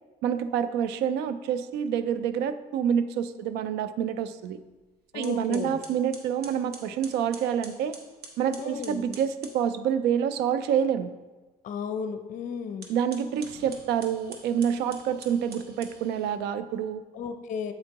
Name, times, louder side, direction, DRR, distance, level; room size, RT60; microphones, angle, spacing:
voice 1, 0.2-4.6 5.1-8.0 8.4-11.1 12.9-17.0, right 8 dB, 85° right, 13 dB, 0.4 m, -27 dB
sound 1, 4.7-4.8 5.2-9.6 12.7-16.4, right 4 dB, 70° right, 1.0 m, -47 dB
voice 2, 5.1-5.8 8.6-9.0 11.6-12.9 17.1-17.7, left 6 dB, 50° left, 8 dB, 0.5 m, -34 dB
7.7 x 4.4 x 2.9 m, 1.2 s
cardioid pair, 110°, 17 cm